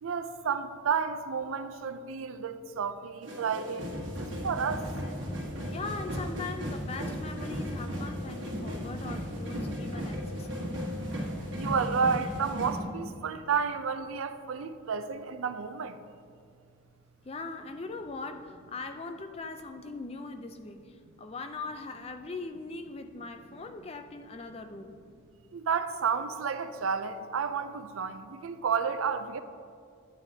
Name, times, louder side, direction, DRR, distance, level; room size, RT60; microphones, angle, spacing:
voice 1, 0.0-4.1 4.4-4.8 11.5-16.0 25.5-29.4, right 6 dB, 90° right, 0.5 m, -31 dB
sound 1, 3.2-12.8, equal, 65° right, 1.4 m, -35 dB
voice 2, 5.7-10.5 17.2-25.0, left 3 dB, 30° left, 0.4 m, -40 dB
12.0 x 9.2 x 2.8 m
head